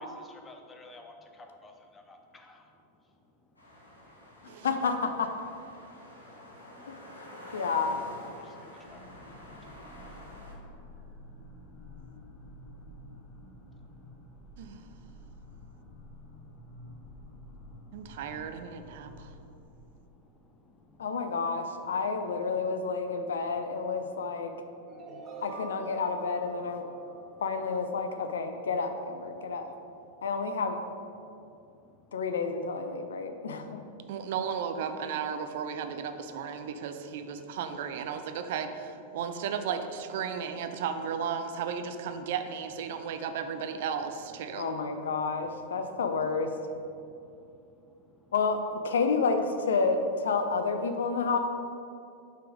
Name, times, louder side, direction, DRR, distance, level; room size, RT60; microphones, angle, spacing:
voice 1, 0.1-4.7 5.8-7.5 8.4-21.1 24.7-25.4 26.9-27.4 29.3-29.5 30.0-30.2 31.2-32.2 33.2-33.5 34.0-34.3 36.7-36.8 42.9-43.2 44.5-44.8 45.8-45.9 46.9-48.3, left 2 dB, 15° left, 4 dB, 0.6 m, -59 dB
sound 1, 3.6-10.5, left 1 dB, 80° left, 1.2 m, -48 dB
voice 2, 4.6-5.3 6.9-8.0 21.0-24.5 25.1-26.9 27.4-29.6 30.2-30.8 32.1-33.8 44.5-46.5 48.3-51.4, left 4 dB, 65° left, 7 dB, 0.4 m, -30 dB
sound 2, 8.8-19.6, left 1 dB, 35° left, 1.1 m, -50 dB
voice 3, 14.6-14.9 17.9-19.3 34.1-44.8, right 7 dB, 55° right, 8 dB, 0.3 m, -35 dB
sound 3, 24.9-28.8, right 4 dB, 25° right, 0.9 m, -47 dB
5.8 x 3.5 x 4.6 m, 2.6 s
figure-of-eight pair, 90°, 0 cm